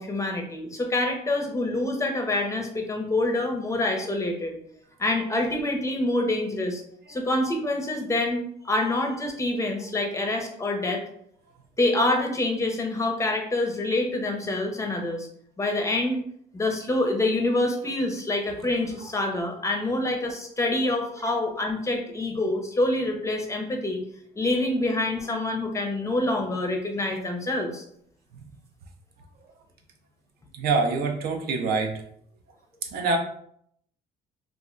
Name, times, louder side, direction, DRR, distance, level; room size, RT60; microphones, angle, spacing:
voice 1, 0.0-4.6 5.0-6.8 7.1-11.0 11.8-15.3 15.6-16.2 16.5-24.0 24.4-27.8, left 2 dB, 20° left, 2 dB, 0.5 m, -26 dB
voice 2, 30.5-32.0 32.9-33.2, right 4 dB, 70° right, 3 dB, 0.5 m, -26 dB
2.3 x 2.0 x 3.6 m, 0.68 s
cardioid pair, 110°, 17 cm